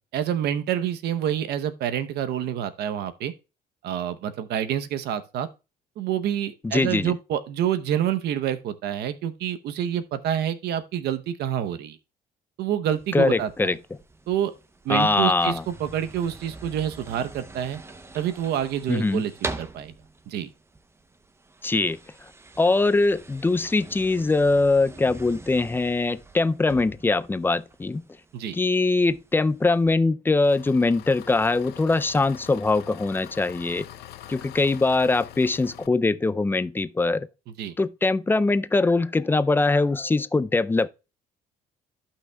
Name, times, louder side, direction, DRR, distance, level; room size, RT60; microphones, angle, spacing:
voice 1, 0.1-3.3 3.8-5.5 6.0-12.0 12.6-13.5 14.3-14.5 14.8-17.8 18.1-19.3 19.6-19.9 20.3-20.5 28.3-28.6 37.6-37.7, right 10 dB, 75° right, 0.8 m, -27 dB
voice 2, 6.6-7.1 13.1-13.8 14.9-15.6 18.9-19.2 21.6-22.0 22.6-28.0 28.5-33.9 34.3-37.3 37.8-40.9, left 3 dB, 10° left, 0.4 m, -22 dB
sound 1, 12.9-29.9, right 3 dB, 15° right, 0.7 m, -43 dB
Engine, 30.4-35.9, left 13 dB, 75° left, 0.6 m, -44 dB
15.0 x 5.7 x 2.3 m
cardioid pair, 110°, 17 cm